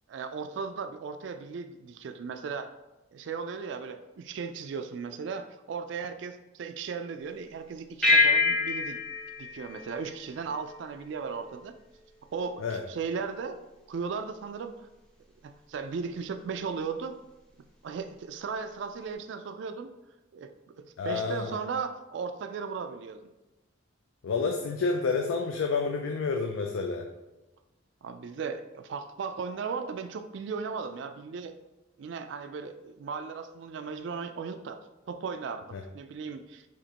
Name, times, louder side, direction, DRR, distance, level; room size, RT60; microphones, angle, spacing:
voice 1, 0.1-2.7 3.1-9.0 9.4-11.7 12.3-13.6 13.9-14.9 15.4-17.2 17.8-19.9 20.3-23.3 28.0-31.5 32.0-34.8 35.1-35.7 35.9-36.7, right 5 dB, 65° right, 8 dB, 0.3 m, -36 dB
sound 1, 8.0-10.8, left 3 dB, 5° left, 0.6 m, -26 dB
voice 2, 21.0-21.6 24.2-27.0 35.7-35.8, left 4 dB, 85° left, 3 dB, 0.4 m, -29 dB
5.0 x 3.5 x 2.9 m, 1.0 s
head